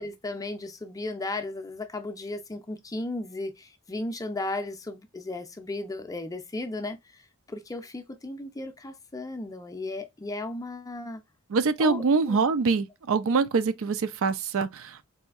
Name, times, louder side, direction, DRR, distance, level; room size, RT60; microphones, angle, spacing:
voice 1, 0.0-7.0 7.5-11.2 11.8-12.4, left 2 dB, 15° left, 0.5 m, -35 dB
voice 2, 11.5-15.1, right 4 dB, 65° right, 0.5 m, -25 dB
4.1 x 2.7 x 2.3 m
head